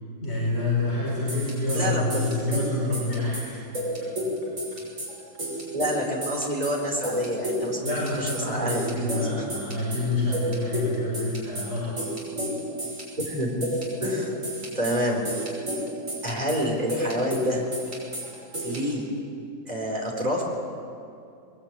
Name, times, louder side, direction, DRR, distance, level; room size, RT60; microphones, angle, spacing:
voice 1, 0.2-3.6 7.8-12.0, left 2 dB, 40° left, -6 dB, 5.2 m, -27 dB
sound 1, 1.1-18.9, equal, 55° right, 6.5 m, -32 dB
voice 2, 1.7-2.2 5.7-7.9 8.2-9.4 13.2-13.7 14.0-14.3 14.6-15.2 16.2-17.6 18.6-19.1 19.7-20.4, equal, 25° right, 0 dB, 4.3 m, -28 dB
22.0 x 21.0 x 8.9 m, 2.5 s
omnidirectional pair, 1.6 m